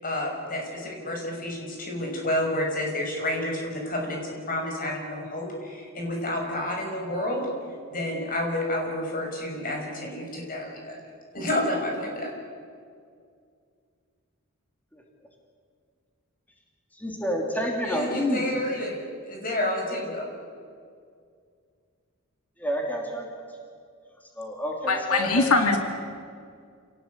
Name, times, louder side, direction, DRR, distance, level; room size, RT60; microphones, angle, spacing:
voice 1, 0.0-7.5 7.9-11.0 11.3-12.3 17.8-20.3, left 1 dB, 40° left, 1 dB, 6.2 m, -30 dB
voice 2, 16.9-18.4 22.6-23.4 24.3-25.5, equal, 5° left, 0 dB, 3.0 m, -29 dB
voice 3, 24.9-25.8, left 3 dB, 90° left, 4 dB, 2.6 m, -22 dB
27.5 x 18.5 x 8.3 m, 2.2 s
head